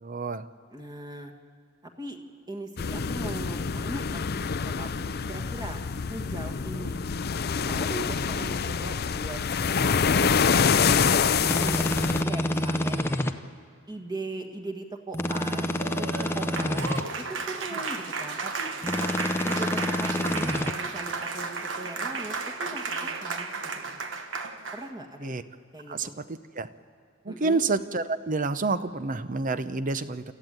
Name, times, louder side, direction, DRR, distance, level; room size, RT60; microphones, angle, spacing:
voice 1, 0.0-0.4 25.2-25.4 25.9-26.7 27.3-30.2, right 3 dB, 45° right, 12 dB, 0.8 m, -28 dB
voice 2, 0.7-1.3 2.0-2.2 2.5-7.0 7.7-9.4 9.8-13.1 13.9-15.7 16.0-18.7 19.4-24.0 24.7-25.3 25.7-26.2 27.3-27.7, right 2 dB, 20° right, 3 dB, 1.9 m, -40 dB
sound 1, 2.8-12.2, left 6 dB, 55° left, 0.6 m, -26 dB
sound 2, 11.4-13.3 15.1-17.0 18.8-20.7, left 1 dB, 15° left, 0.7 m, -28 dB
Applause, 15.7-24.9, right 4 dB, 70° right, 1.3 m, -33 dB
30.0 x 14.0 x 9.1 m, 2.2 s
head